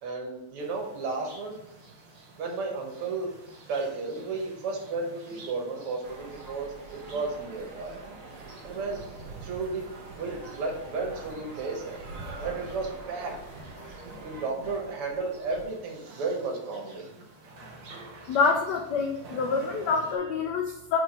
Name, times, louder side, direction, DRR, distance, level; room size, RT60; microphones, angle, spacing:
voice 1, 0.0-1.6 2.4-3.3 3.7-8.0 8.6-9.1 9.4-9.8 10.2-12.0 12.4-13.3 14.2-17.1 20.7-20.8, right 3 dB, 80° right, 1 dB, 2.1 m, -33 dB
sound 1, 0.6-20.2, right 3 dB, 60° right, 1.6 m, -48 dB
sound 2, 6.0-14.5, right 3 dB, 45° right, 1.5 m, -45 dB
voice 2, 18.3-21.0, left 5 dB, 80° left, 3 dB, 0.9 m, -26 dB
4.6 x 4.4 x 5.3 m, 0.90 s
omnidirectional pair, 2.4 m